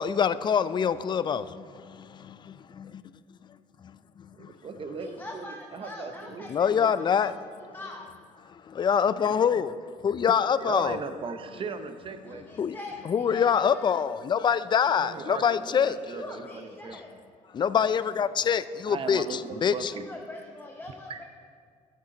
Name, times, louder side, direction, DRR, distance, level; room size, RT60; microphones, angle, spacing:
voice 1, 0.0-3.0 3.8-4.6 6.5-7.3 8.5-9.8 10.0-11.0 12.6-12.8 13.0-16.2 16.9-17.0 17.5-19.9, left 7 dB, 35° left, 0.3 m, -25 dB
voice 2, 4.3-6.9 10.6-12.4 15.0-17.0 18.9-20.1 21.1-21.2, right 5 dB, 40° right, 0.7 m, -38 dB
voice 3, 4.9-6.7 6.9-7.3 7.7-8.1 12.2-14.0 15.9-17.1 19.8-21.2, left 2 dB, 15° left, 0.7 m, -43 dB
11.5 x 8.3 x 3.8 m
cardioid pair, 110°, 14 cm